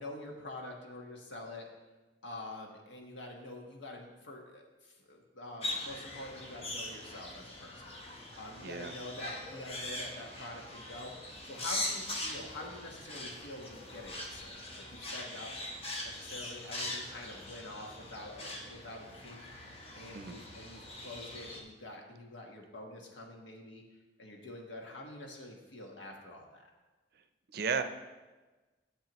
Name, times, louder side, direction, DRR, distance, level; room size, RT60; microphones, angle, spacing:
voice 1, 0.0-1.7 2.2-8.0 8.3-15.5 16.0-19.4 19.9-23.8 24.2-26.7, left 1 dB, 85° left, 1 dB, 1.3 m, -46 dB
sound 1, 5.6-21.6, left 1 dB, 35° left, 1.1 m, -42 dB
voice 2, 8.6-8.9 20.1-20.4 27.5-27.8, right 5 dB, 55° right, 10 dB, 0.5 m, -33 dB
10.5 x 6.9 x 3.0 m, 1.2 s
head